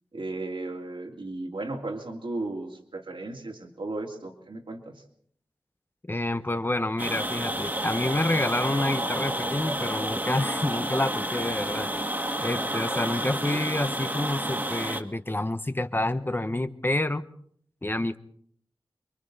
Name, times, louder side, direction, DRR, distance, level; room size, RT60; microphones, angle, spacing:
voice 1, 0.1-5.0 11.7-11.9 13.5-13.7, right 2 dB, 70° right, 2 dB, 2.7 m, -35 dB
voice 2, 6.1-11.9 12.4-17.2 17.8-18.2, left 1 dB, 25° left, 10 dB, 0.9 m, -28 dB
sound 1, 7.0-15.0, right 1 dB, 20° right, 1.8 m, -30 dB
28.0 x 23.0 x 4.1 m, 0.63 s
wide cardioid pair, 70°, 9 cm